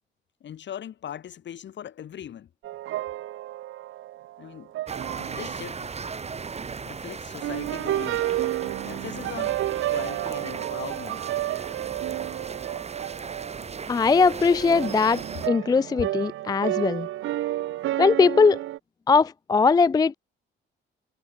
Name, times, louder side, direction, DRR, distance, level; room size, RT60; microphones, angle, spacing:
voice 1, 0.4-2.5 4.4-4.7 5.2-5.9 6.9-8.3 8.8-11.2, left 10 dB, 65° left, 6.3 m, -39 dB
sound 1, 2.6-5.8 6.2-6.6 7.4-18.8, right 14 dB, 85° right, 2.2 m, -31 dB
sound 2, 4.9-15.5, right 5 dB, 35° right, 2.4 m, -37 dB
voice 2, 13.9-17.1 18.0-18.6 19.1-20.1, left 4 dB, 20° left, 0.3 m, -20 dB
cardioid pair, 90°, 20 cm